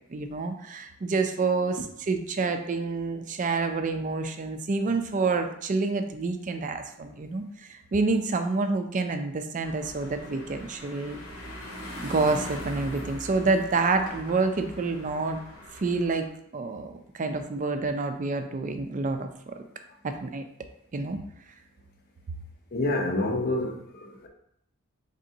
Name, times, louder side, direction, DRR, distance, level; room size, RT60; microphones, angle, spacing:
voice 1, 0.1-11.2 12.0-15.4 15.8-19.6 20.0-20.4 20.9-21.2, right 3 dB, 35° right, 7 dB, 0.4 m, -28 dB
sound 1, 9.6-16.3, equal, 75° left, 0.9 m, -41 dB
voice 2, 22.7-24.3, left 2 dB, 45° left, 3 dB, 0.6 m, -28 dB
3.9 x 3.3 x 2.7 m, 0.73 s
head